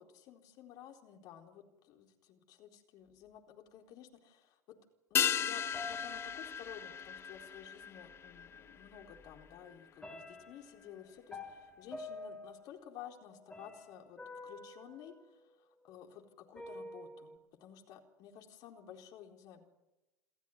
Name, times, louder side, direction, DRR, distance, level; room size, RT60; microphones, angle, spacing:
voice 1, 0.0-4.8 5.1-11.4 11.8-19.7, left 9 dB, 50° left, 3 dB, 4.2 m, -53 dB
sound 1, 5.2-9.9 10.1-10.2, left 9 dB, 30° left, 0.8 m, -36 dB
sound 2, 5.7-7.2 8.4-8.5 8.9-9.5 10.0-15.9 16.6-17.4, left 2 dB, 10° left, 4.1 m, -49 dB
29.0 x 13.5 x 9.5 m, 0.99 s
figure-of-eight pair, 80°, 9 cm